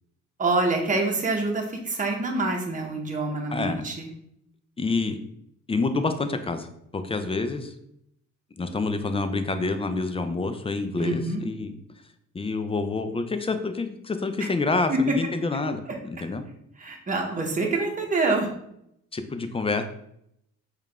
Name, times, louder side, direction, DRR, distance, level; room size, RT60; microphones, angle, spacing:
voice 1, 0.4-4.1 11.0-11.4 14.9-15.0 16.8-18.5, right 3 dB, 25° right, 1 dB, 0.9 m, -26 dB
voice 2, 3.5-3.8 4.8-5.2 5.7-7.7 8.6-11.8 12.3-16.4 19.1-19.8, left 3 dB, 20° left, 8 dB, 0.4 m, -27 dB
4.7 x 2.4 x 3.4 m, 0.74 s
cardioid pair, 90°, 30 cm